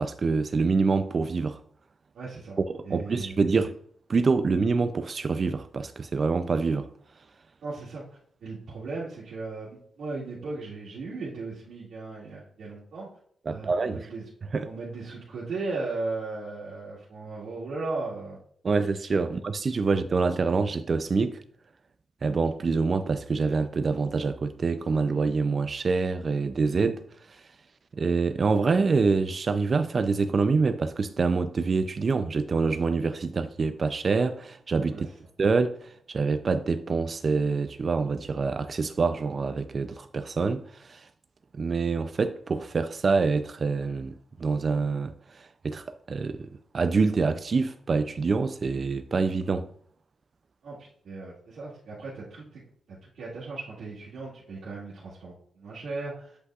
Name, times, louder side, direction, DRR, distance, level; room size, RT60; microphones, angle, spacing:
voice 1, 0.0-1.6 2.7-3.8 4.1-6.9 13.5-14.1 14.5-14.7 18.6-21.4 22.2-27.0 28.0-35.1 35.4-41.1 41.5-44.1 44.4-45.1 45.4-46.5 46.7-49.7, right 4 dB, 45° right, 0.3 m, -26 dB
voice 2, 2.1-2.6 2.8-3.4 7.6-13.1 13.5-14.2 14.7-18.4 19.1-19.3 34.9-35.0 50.6-52.6 52.9-56.4, right 3 dB, 80° right, 1.9 m, -37 dB
8.1 x 5.4 x 2.4 m
wide cardioid pair, 120°, 0 cm